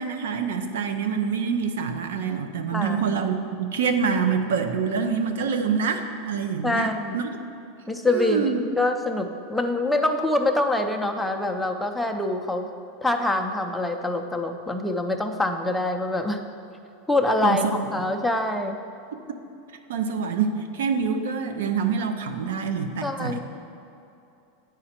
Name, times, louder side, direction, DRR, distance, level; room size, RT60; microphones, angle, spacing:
voice 1, 0.0-7.3 8.0-8.6 17.4-17.8 19.9-23.4, right 6 dB, 85° right, 7 dB, 0.5 m, -26 dB
voice 2, 6.6-7.2 7.9-12.7 13.0-16.4 17.1-17.6 17.9-18.8 23.0-23.4, left 2 dB, 5° left, 3 dB, 0.5 m, -25 dB
8.8 x 4.9 x 4.3 m, 2.7 s
supercardioid pair, 140°, 0 cm